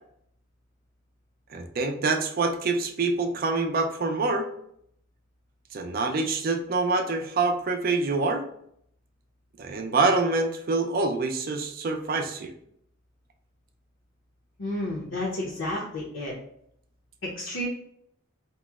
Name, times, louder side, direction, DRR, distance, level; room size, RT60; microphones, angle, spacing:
voice 1, 1.5-4.5 5.7-8.4 9.6-12.5, right 3 dB, 45° right, 5 dB, 0.4 m, -26 dB
voice 2, 14.6-16.3 17.2-17.7, left 1 dB, 70° left, -5 dB, 0.6 m, -31 dB
2.9 x 2.0 x 3.4 m, 0.71 s
head